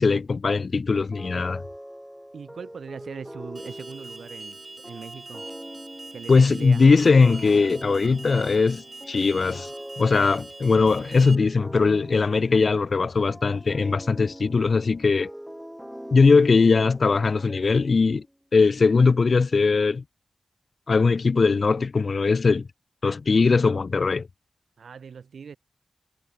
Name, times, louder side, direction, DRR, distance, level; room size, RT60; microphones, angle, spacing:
voice 1, 0.0-1.6 6.3-9.7 10.0-15.3 16.1-18.2 18.5-20.0 20.9-22.7 23.0-24.3, left 4 dB, 60° left, 0.5 m, -20 dB
sound 1, 1.1-18.3, equal, 5° right, 1.5 m, -42 dB
voice 2, 2.3-5.5 6.1-6.8 24.8-25.6, right 6 dB, 80° right, 5.2 m, -40 dB
Alarm, 3.6-11.4, right 2 dB, 35° right, 6.5 m, -43 dB
cardioid pair, 45°, 0 cm